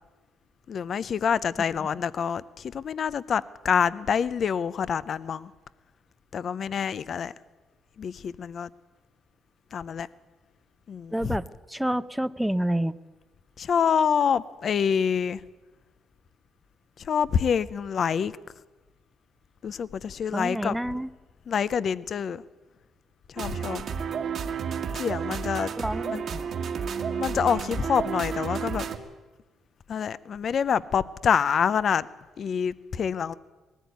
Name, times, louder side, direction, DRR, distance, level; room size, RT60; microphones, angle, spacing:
voice 1, 0.7-2.4 2.7-5.5 6.3-7.3 8.0-8.7 9.7-10.1 10.9-11.4 13.6-15.4 17.1-18.3 19.6-20.8 21.5-22.4 23.4-23.8 24.9-25.7 26.1-26.2 27.2-28.8 29.9-32.1 32.4-33.4, left 7 dB, 55° left, 17 dB, 0.6 m, -26 dB
voice 2, 11.1-12.9 20.3-21.1 25.8-26.4, right 1 dB, 5° right, 14 dB, 0.7 m, -29 dB
Upbeat loop, 23.4-29.0, right 7 dB, 60° right, 1.8 m, -31 dB
19.5 x 15.0 x 9.4 m, 1.2 s
cardioid pair, 90°, 0 cm